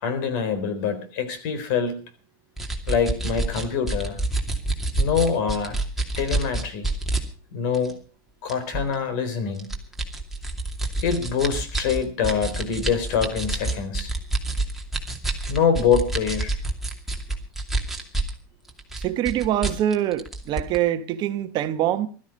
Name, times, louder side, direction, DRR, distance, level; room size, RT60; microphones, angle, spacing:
voice 1, 0.0-2.0 2.9-4.2 5.0-5.8 6.2-6.9 7.5-8.0 8.4-9.7 11.0-14.1 15.5-16.5, left 6 dB, 65° left, 4.0 m, -24 dB
sound 1, 2.6-7.2 7.7-7.9 8.5-8.9 9.6-18.4 18.7-20.8, right 2 dB, ahead, 2.6 m, -27 dB
voice 2, 19.0-22.1, right 11 dB, 40° right, 1.1 m, -24 dB
16.5 x 13.0 x 5.3 m
supercardioid pair, 125°, 11 cm